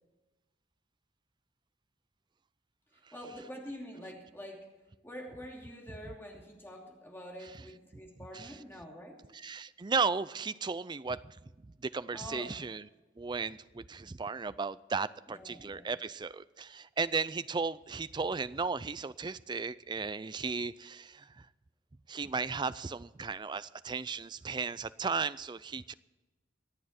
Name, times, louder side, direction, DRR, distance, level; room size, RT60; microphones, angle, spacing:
voice 1, 2.9-4.7 5.0-9.3 12.1-12.6 15.3-15.9, equal, 10° left, 2.8 m, -46 dB
voice 2, 9.4-11.4 11.8-12.8 13.2-21.5 22.1-25.9, right 4 dB, 25° right, 0.4 m, -35 dB
25.0 x 8.8 x 4.3 m
head